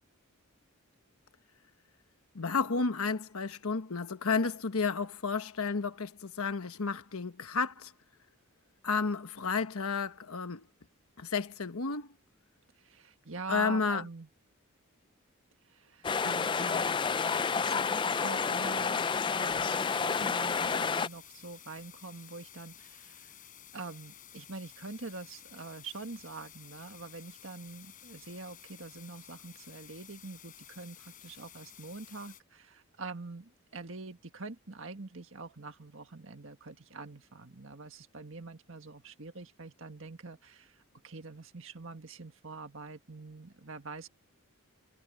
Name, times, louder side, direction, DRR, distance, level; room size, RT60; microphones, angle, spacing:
voice 1, 2.3-7.9 8.8-10.6 11.2-12.1 13.5-14.0, left 4 dB, 75° left, 1.1 m, -32 dB
voice 2, 12.8-14.3 15.6-23.3 23.7-44.1, right 3 dB, 60° right, 1.7 m, -45 dB
sound 1, 16.0-21.1, left 5 dB, 20° left, 0.3 m, -30 dB
sound 2, 19.7-32.4, left 10 dB, 40° left, 4.4 m, -53 dB
head